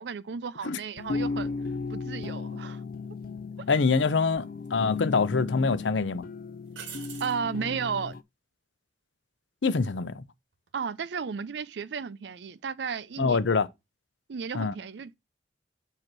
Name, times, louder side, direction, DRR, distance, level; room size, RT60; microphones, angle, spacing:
voice 1, 0.0-1.5 1.9-2.8 7.2-8.2 10.7-13.4 14.3-15.1, right 6 dB, 65° right, 0.4 m, -34 dB
sound 1, 0.9-8.2, left 4 dB, 50° left, 0.4 m, -35 dB
sound 2, 1.0-2.5, equal, 20° left, 2.2 m, -51 dB
sound 3, 3.4-3.5 4.6-5.3 5.7-5.8 6.7-7.4 10.5-10.9, right 8 dB, 85° right, 1.1 m, -44 dB
voice 2, 3.7-6.3 9.6-10.2 13.2-13.7 14.5-14.7, left 4 dB, 85° left, 0.6 m, -25 dB
7.7 x 2.9 x 5.9 m
head